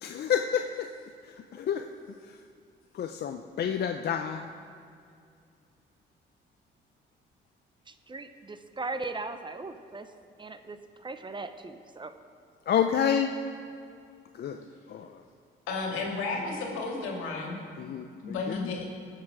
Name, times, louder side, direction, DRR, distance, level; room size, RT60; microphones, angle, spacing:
voice 1, 0.0-0.9 1.2-1.9 2.3-2.4 2.9-4.5 12.7-13.3 14.3-14.6 14.9-15.2 17.8-18.7, left 8 dB, 55° left, 5 dB, 0.6 m, -29 dB
voice 2, 7.9-10.1 10.4-12.1, right 3 dB, 25° right, 9 dB, 0.7 m, -38 dB
voice 3, 15.7-17.6 18.2-18.8, left 3 dB, 90° left, 0 dB, 2.1 m, -32 dB
17.5 x 6.6 x 4.9 m, 2.4 s
cardioid pair, 90°, 20 cm